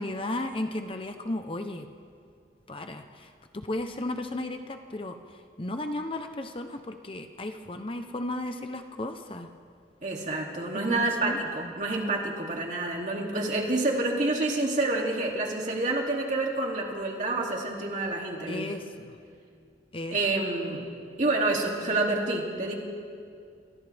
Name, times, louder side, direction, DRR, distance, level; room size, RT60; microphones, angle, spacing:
voice 1, 0.0-1.9 2.7-5.2 5.6-9.5 10.9-11.7 18.5-19.1 19.9-20.2, left 1 dB, 30° left, 6 dB, 0.8 m, -34 dB
voice 2, 10.0-18.7 20.1-20.9 21.2-22.7, right 2 dB, 45° right, -1 dB, 2.8 m, -28 dB
28.5 x 26.5 x 3.5 m, 2.3 s
head